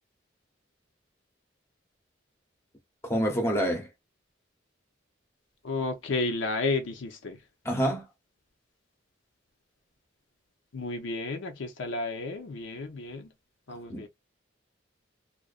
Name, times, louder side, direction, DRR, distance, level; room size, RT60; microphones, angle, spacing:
voice 1, 3.0-3.9 7.7-8.1 13.9-14.1, equal, 15° left, 0.7 m, -27 dB
voice 2, 5.6-7.4 10.7-13.3 13.7-14.1, left 3 dB, 75° left, 0.6 m, -32 dB
2.4 x 2.1 x 2.3 m
head